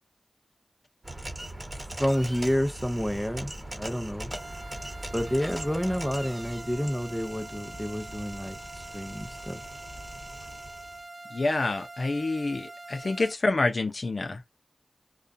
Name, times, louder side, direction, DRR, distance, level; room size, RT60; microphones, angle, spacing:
sound 1, 1.0-11.0, right 1 dB, 35° right, 1.1 m, -40 dB
voice 1, 2.0-4.3 5.1-8.6 8.9-9.6, equal, 5° left, 0.5 m, -29 dB
sound 2, 4.3-13.3, right 2 dB, 50° right, 0.9 m, -44 dB
voice 2, 11.3-14.6, left 2 dB, 75° left, 0.5 m, -28 dB
2.3 x 2.3 x 2.5 m
cardioid pair, 40°, 0 cm